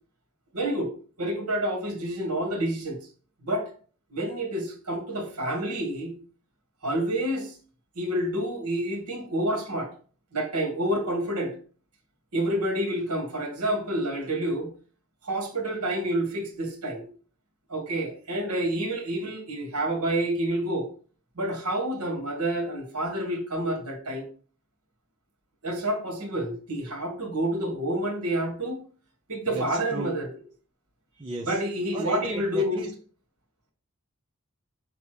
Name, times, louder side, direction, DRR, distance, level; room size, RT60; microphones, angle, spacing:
voice 1, 0.5-0.9 1.2-3.0 3.4-3.7 4.1-6.1 6.8-7.5 8.0-9.9 10.3-11.5 12.3-14.7 15.2-17.1 17.7-20.9 21.4-24.3 25.6-28.8 29.3-30.3 31.5-32.8, right 1 dB, 80° right, 1.9 m, -28 dB
voice 2, 29.5-30.2 31.2-31.6 31.9-32.9, right 2 dB, 20° right, 0.7 m, -34 dB
6.9 x 3.1 x 4.9 m
head